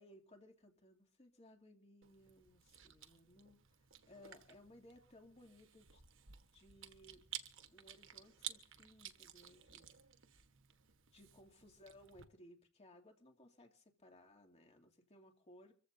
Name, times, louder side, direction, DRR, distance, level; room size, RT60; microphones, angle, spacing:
voice 1, 0.0-3.6 4.1-6.0 6.5-7.2 7.7-9.9 11.1-15.7, left 1 dB, 30° left, 3 dB, 2.5 m, -62 dB
Chewing mastication, 2.0-12.2, right 10 dB, 65° right, 1.3 m, -54 dB
25.5 x 15.0 x 2.7 m, 0.42 s
head